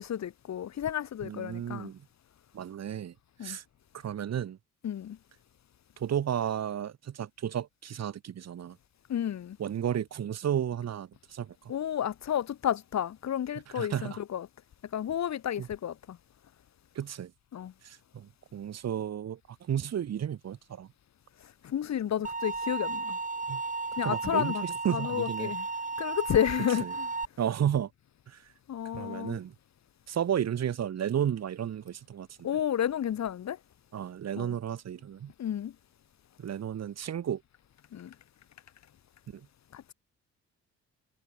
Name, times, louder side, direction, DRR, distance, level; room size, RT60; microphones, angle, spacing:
voice 1, 0.0-1.9 3.4-3.6 4.8-5.2 9.1-9.6 11.7-14.5 14.9-16.2 17.5-17.7 21.6-23.2 24.0-24.6 24.9-25.7 26.0-27.1 28.7-29.4 32.4-33.6 34.4-34.5 35.4-35.7 37.9-38.1 39.7-39.9, left 10 dB, 65° left, 4.3 m, -31 dB
voice 2, 1.2-2.0 2.5-3.1 3.4-3.6 3.9-4.6 6.0-8.8 9.6-11.5 13.7-14.2 15.6-15.7 16.9-17.3 17.8-19.4 19.7-20.9 23.5-23.6 24.0-25.5 26.8-26.9 27.4-27.9 28.3-28.4 28.9-29.5 30.1-32.3 33.9-35.3 36.4-37.4 39.3-39.4, right 9 dB, 60° right, 2.8 m, -33 dB
sound 1, 22.2-27.2, right 4 dB, 25° right, 7.4 m, -34 dB
cardioid pair, 90°, 30 cm